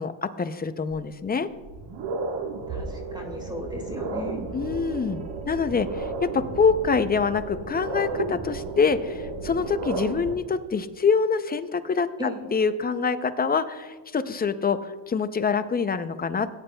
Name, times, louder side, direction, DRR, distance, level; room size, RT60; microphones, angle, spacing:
voice 1, 0.0-1.5 4.5-12.1 12.5-16.5, left 5 dB, 20° left, 11 dB, 0.4 m, -25 dB
sound 1, 0.9-1.0 1.5-10.3, right 4 dB, 65° right, 1.4 m, -33 dB
voice 2, 2.7-4.4 12.2-12.4, left 1 dB, 10° right, 2 dB, 1.8 m, -35 dB
19.0 x 9.8 x 2.2 m, 1.3 s
cardioid pair, 110°, 50 cm